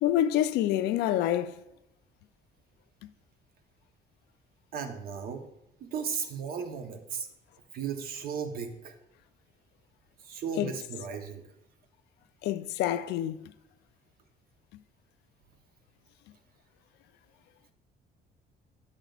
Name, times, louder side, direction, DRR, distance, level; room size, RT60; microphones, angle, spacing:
voice 1, 0.0-1.6 10.6-10.7 12.4-13.4, left 12 dB, 80° left, 0.4 m, -27 dB
voice 2, 4.7-5.4 5.8-7.3 7.7-9.0 10.2-11.4, right 6 dB, 60° right, 1.0 m, -35 dB
8.8 x 7.2 x 2.4 m
cardioid pair, 110°, 17 cm